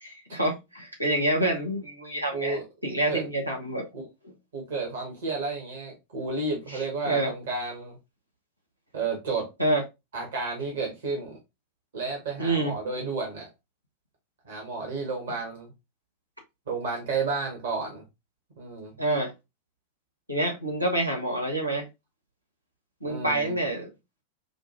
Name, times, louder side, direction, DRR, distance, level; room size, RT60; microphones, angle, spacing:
voice 1, 0.0-3.8 6.7-7.3 9.6-9.8 12.4-12.7 19.0-19.3 20.3-21.9 23.0-23.9, right 1 dB, 85° right, 1.1 m, -27 dB
voice 2, 2.3-2.6 3.1-3.3 3.9-4.0 4.5-8.0 8.9-9.5 10.1-11.4 11.9-13.5 14.4-15.7 16.7-18.0 18.6-18.9 23.0-23.5, right 4 dB, 60° right, 1.3 m, -32 dB
5.0 x 2.4 x 2.9 m
figure-of-eight pair, 90°, 0 cm